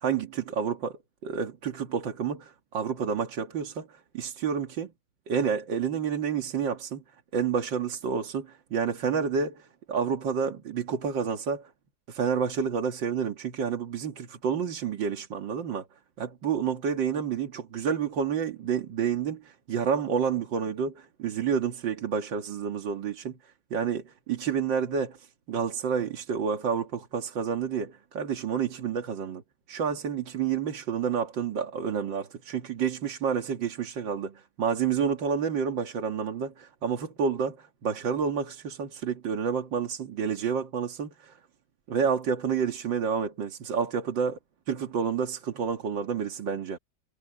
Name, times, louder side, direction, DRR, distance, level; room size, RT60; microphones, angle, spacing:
voice 1, 0.0-0.9 1.2-4.9 5.3-7.0 7.3-11.7 12.1-15.9 16.2-23.4 23.7-29.4 29.7-41.4 41.9-44.3 44.7-46.8, right 6 dB, 85° right, 2.4 m, -29 dB
omnidirectional pair, 2.0 m